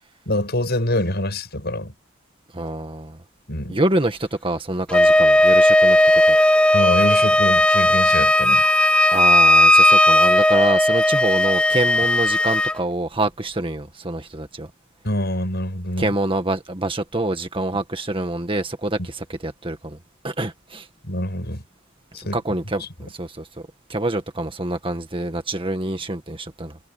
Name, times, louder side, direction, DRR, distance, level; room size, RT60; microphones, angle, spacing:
voice 1, 0.3-1.9 3.5-3.8 6.7-8.6 15.0-16.1 19.0-19.1 21.0-21.6 22.1-22.4 22.8-22.9, left 1 dB, 55° left, 7.7 m, -25 dB
voice 2, 2.5-3.2 3.7-6.4 9.1-14.7 16.0-20.0 20.2-20.9 22.2-23.5 23.9-26.8, right 2 dB, 25° right, 1.8 m, -26 dB
Wind instrument woodwind instrument, 4.9-12.8, left 1 dB, 5° left, 1.1 m, -15 dB
head